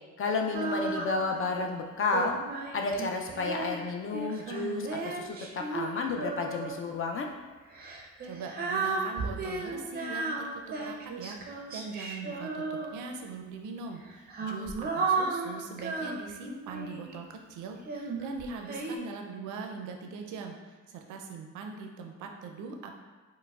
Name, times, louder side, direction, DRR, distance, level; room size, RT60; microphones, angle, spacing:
voice 1, 0.2-2.4 2.7-7.3, left 3 dB, 45° left, 2 dB, 0.4 m, -31 dB
Female singing, 0.5-1.6 2.1-6.9 7.7-13.3 14.0-17.2 17.8-19.0, right 3 dB, 30° right, 0.4 m, -34 dB
voice 2, 8.2-20.6 20.9-22.9, right 4 dB, 90° right, 3 dB, 0.5 m, -41 dB
4.5 x 2.0 x 2.3 m, 1.4 s
cardioid pair, 90°, 30 cm